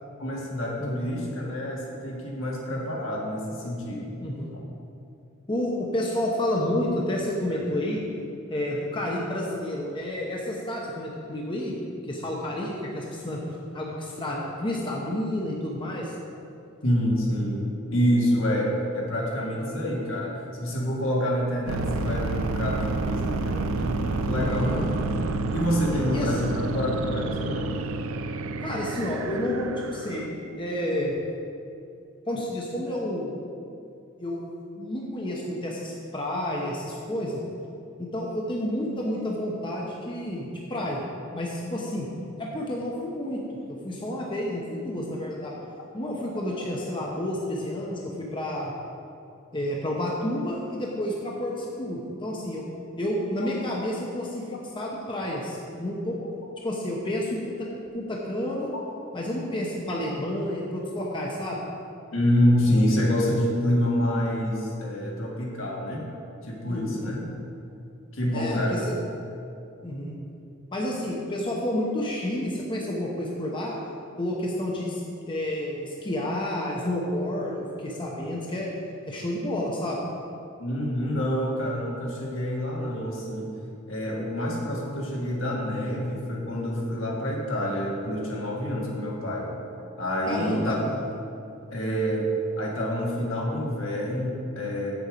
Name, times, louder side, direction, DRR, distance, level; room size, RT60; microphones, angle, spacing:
voice 1, 0.2-4.1 16.8-17.6 17.9-24.8 25.5-27.7 62.1-66.1 66.4-67.2 68.1-68.8 80.6-83.5 83.9-89.5 90.0-90.8 91.7-92.3 92.6-94.9, equal, 70° left, -3 dB, 1.7 m, -27 dB
voice 2, 0.8-1.1 4.2-4.5 5.5-8.0 8.5-11.8 12.0-13.4 13.7-16.1 19.6-19.9 24.4-24.9 25.9-26.3 28.6-31.1 32.3-33.4 34.2-34.5 34.8-37.4 38.0-41.0 41.3-42.1 42.4-43.4 43.7-45.6 45.9-48.7 49.5-52.6 53.0-56.2 56.6-57.7 57.9-58.7 59.1-61.6 66.7-67.1 68.3-69.0 69.8-70.2 70.7-73.8 74.2-78.7 79.1-80.0 90.3-91.1, left 1 dB, 25° left, -3 dB, 0.8 m, -30 dB
sound 1, 21.7-30.3, right 3 dB, 80° right, 0.5 m, -29 dB
7.8 x 6.8 x 5.0 m, 2.6 s
head